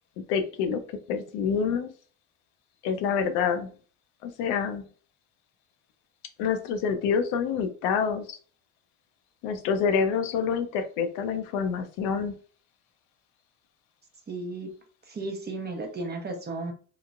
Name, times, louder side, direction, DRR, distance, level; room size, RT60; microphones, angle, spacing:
voice 1, 0.2-0.8 1.1-1.9 2.8-3.7 4.2-4.9 6.4-8.4 9.4-12.3, left 6 dB, 70° left, 8 dB, 0.6 m, -27 dB
voice 2, 14.3-14.7 15.1-16.7, right 2 dB, 25° right, 3 dB, 0.7 m, -34 dB
2.9 x 2.0 x 2.4 m, 0.42 s
supercardioid pair, 85°, 42 cm